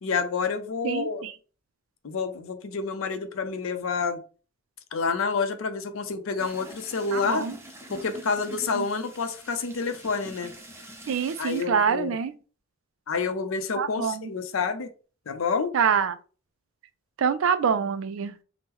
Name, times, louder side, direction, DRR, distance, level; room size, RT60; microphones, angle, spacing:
voice 1, 0.0-1.2 2.0-4.2 4.9-7.4 7.9-10.5 11.4-12.1 13.1-14.9 15.3-15.8, left 5 dB, 75° left, 0.5 m, -28 dB
voice 2, 0.8-1.3 7.1-7.6 8.7-8.9 11.1-12.3 13.8-14.3 15.7-16.1 17.2-18.4, right 6 dB, 75° right, 0.4 m, -25 dB
sound 1, 6.4-11.6, equal, 10° right, 0.5 m, -45 dB
3.6 x 2.0 x 2.9 m
head